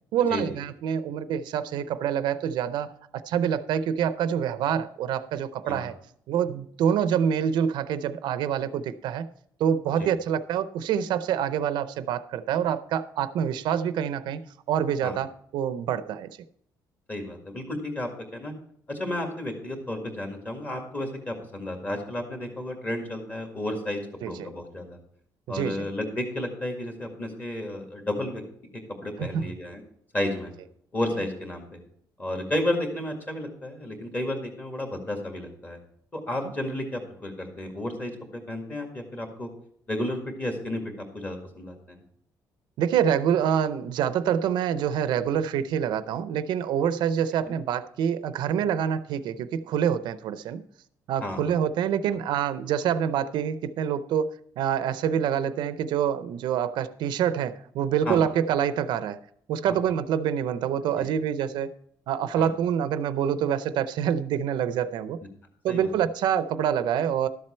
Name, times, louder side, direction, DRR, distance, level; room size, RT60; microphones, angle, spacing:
voice 1, 0.1-2.9 3.3-5.9 6.3-9.3 9.6-14.4 14.7-16.3 24.2-24.5 25.5-25.9 29.2-29.5 42.8-50.6 51.1-59.2 59.5-61.7 62.1-65.2 65.6-67.3, right 8 dB, 75° right, 13 dB, 0.6 m, -26 dB
voice 2, 17.1-18.5 18.9-25.0 25.5-28.4 28.7-29.8 30.1-30.5 30.9-31.8 32.2-35.8 36.1-39.5 39.9-42.0 47.5-47.6 51.2-51.5 58.1-58.2 61.0-61.1 62.4-62.5 65.7-65.9, left 1 dB, 20° left, 3 dB, 1.9 m, -32 dB
12.5 x 7.6 x 4.4 m, 0.67 s
cardioid pair, 170°, 8 cm